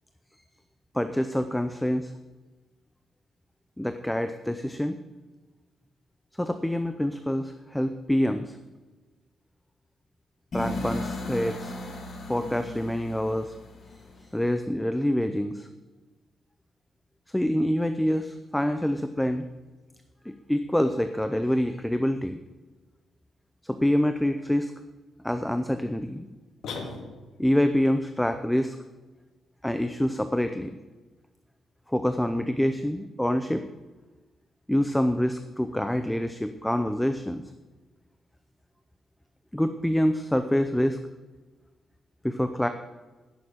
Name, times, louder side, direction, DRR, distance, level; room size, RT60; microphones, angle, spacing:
voice 1, 0.9-2.1 3.8-5.0 6.4-8.6 10.5-11.8 12.3-13.5 14.3-15.7 17.3-19.4 20.3-22.4 23.6-24.7 25.2-26.3 27.4-28.8 29.6-30.8 31.9-33.7 34.7-37.4 39.5-41.0 42.2-42.7, left 1 dB, 5° left, 8 dB, 0.5 m, -26 dB
sound 1, 10.5-14.4, left 2 dB, 45° left, 4.6 m, -36 dB
sound 2, 26.6-27.5, left 4 dB, 85° left, 1.9 m, -37 dB
10.5 x 7.0 x 9.0 m, 1.3 s
cardioid pair, 145°, 0 cm